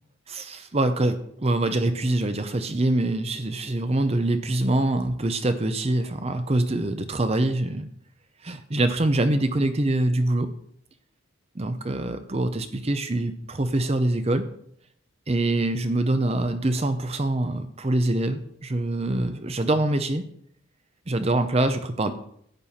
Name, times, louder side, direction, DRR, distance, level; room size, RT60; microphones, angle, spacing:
voice 1, 0.3-7.9 8.4-10.5 11.6-14.5 15.3-20.2 21.1-22.1, right 2 dB, 30° right, 9 dB, 0.6 m, -24 dB
10.5 x 8.7 x 4.2 m, 0.68 s
head